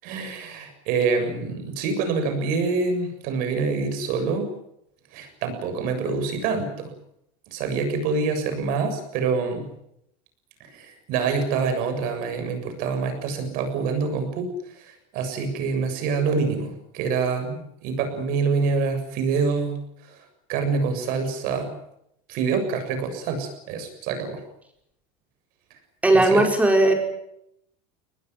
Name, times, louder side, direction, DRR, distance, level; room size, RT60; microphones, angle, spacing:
voice 1, 0.0-4.5 5.1-6.9 7.5-9.7 10.6-21.7 22.3-24.4 26.1-26.5, right 4 dB, 60° right, 7 dB, 7.3 m, -26 dB
voice 2, 26.0-26.9, right 2 dB, 10° right, 3 dB, 5.1 m, -17 dB
22.5 x 20.0 x 9.5 m, 0.77 s
supercardioid pair, 145°, 17 cm